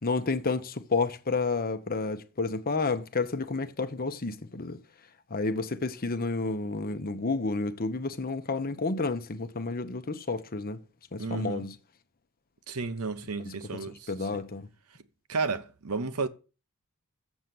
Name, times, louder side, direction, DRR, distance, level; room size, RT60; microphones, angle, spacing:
voice 1, 0.0-4.8 5.3-10.8 11.1-11.7 13.4-13.5 14.1-14.7, left 3 dB, 40° left, 0.9 m, -30 dB
voice 2, 11.2-11.7 12.7-14.1 15.3-16.3, right 4 dB, 80° right, 0.9 m, -32 dB
7.1 x 6.8 x 7.6 m
head